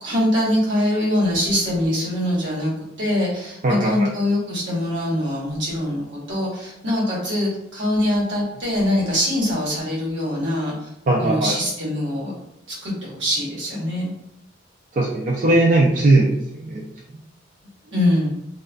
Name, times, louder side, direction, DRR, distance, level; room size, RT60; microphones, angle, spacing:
voice 1, 0.0-2.7 3.0-10.9 11.2-12.3 12.7-14.1 17.9-18.3, left 1 dB, 85° right, -5 dB, 1.0 m, -23 dB
voice 2, 3.6-4.1 11.1-11.5 14.9-16.8, right 2 dB, 45° right, -4 dB, 0.4 m, -19 dB
2.3 x 2.2 x 2.4 m, 0.77 s
head